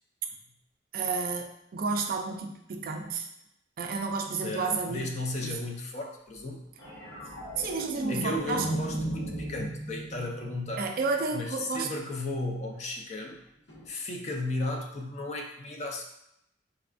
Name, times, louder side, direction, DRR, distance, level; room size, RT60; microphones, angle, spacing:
voice 1, 0.9-3.3 3.8-5.1 5.4-5.6 7.6-8.7 10.8-11.9, right 4 dB, 50° right, 4 dB, 0.3 m, -31 dB
voice 2, 4.4-6.6 8.1-10.9 11.3-13.4 13.9-16.0, left 2 dB, 40° left, 2 dB, 0.4 m, -35 dB
sound 1, 6.8-11.3 13.7-13.9, right 1 dB, 70° left, 1.2 m, -36 dB
4.0 x 2.3 x 2.5 m, 0.81 s
head